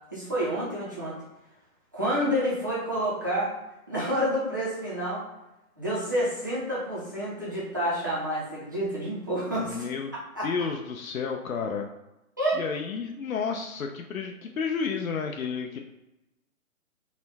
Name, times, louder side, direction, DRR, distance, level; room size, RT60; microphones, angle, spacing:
voice 1, 0.1-1.2 1.9-3.5 3.9-5.2 5.8-9.8 10.3-10.5 12.4-12.6, equal, 15° right, -9 dB, 0.5 m, -28 dB
voice 2, 9.5-10.1 10.4-11.9 12.5-15.8, left 5 dB, 75° left, 2 dB, 0.7 m, -31 dB
4.2 x 2.2 x 4.0 m, 0.94 s
hypercardioid pair, 160°, 43 cm